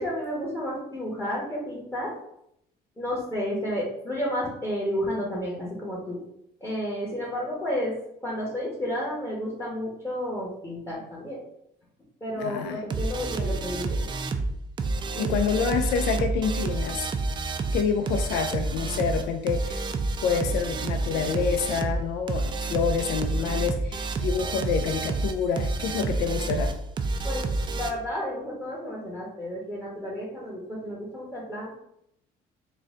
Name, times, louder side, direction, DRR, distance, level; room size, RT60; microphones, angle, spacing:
voice 1, 0.0-2.1 3.0-6.2 6.6-7.9 8.2-11.4 12.2-14.1 15.1-15.5 27.2-27.4 27.7-31.8, equal, 15° left, -5 dB, 1.0 m, -31 dB
voice 2, 12.3-12.8 15.2-17.1 17.7-19.8 20.2-26.7, left 6 dB, 80° left, 6 dB, 0.4 m, -27 dB
sound 1, 12.9-27.9, right 3 dB, 30° right, 0.3 m, -29 dB
3.8 x 2.2 x 3.6 m, 0.77 s
cardioid pair, 110°, 17 cm